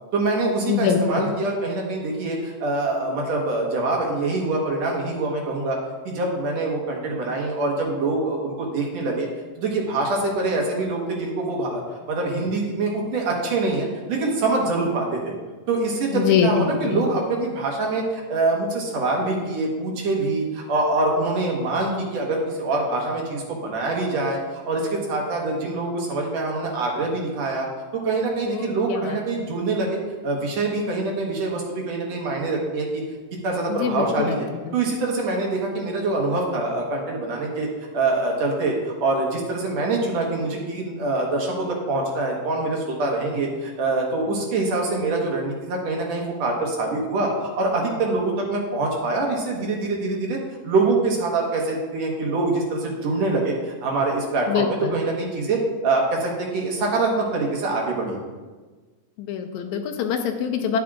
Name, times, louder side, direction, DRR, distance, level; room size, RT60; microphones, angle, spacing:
voice 1, 0.1-5.8 6.0-9.3 9.6-11.8 12.1-15.3 15.7-27.7 28.0-33.0 33.4-37.7 37.9-50.4 50.6-58.2, right 2 dB, 65° right, -1 dB, 2.3 m, -24 dB
voice 2, 0.7-1.0 16.1-17.0 28.5-29.2 33.7-34.4 34.7-34.8 54.5-55.0 59.2-60.8, left 7 dB, 85° left, 5 dB, 2.1 m, -24 dB
11.0 x 8.7 x 2.4 m, 1.3 s
omnidirectional pair, 3.4 m